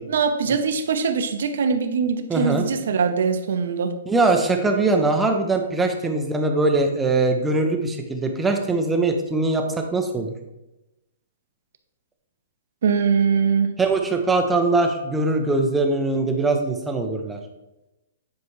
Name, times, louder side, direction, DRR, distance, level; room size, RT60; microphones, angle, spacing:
voice 1, 0.1-3.9 12.8-13.7, right 6 dB, 65° right, 8 dB, 0.8 m, -22 dB
voice 2, 2.3-2.7 4.1-10.3 13.8-17.4, right 3 dB, 5° right, 4 dB, 0.6 m, -22 dB
9.6 x 4.7 x 3.2 m, 0.95 s
hypercardioid pair, 170°, 0 cm